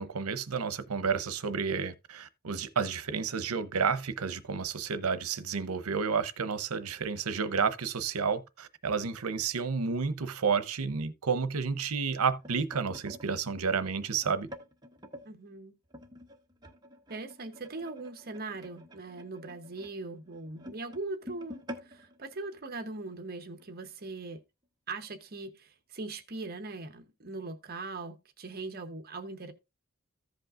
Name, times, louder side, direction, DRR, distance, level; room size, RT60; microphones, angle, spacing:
voice 1, 0.0-14.5, right 5 dB, 80° right, 0.8 m, -31 dB
sound 1, 12.0-15.3 15.9-23.2 23.6-23.8 24.1-24.4 25.1-25.2, equal, 20° right, 1.0 m, -49 dB
voice 2, 15.2-15.7 17.1-24.4 24.9-29.5, right 3 dB, 45° right, 0.9 m, -40 dB
15.0 x 5.3 x 2.4 m
head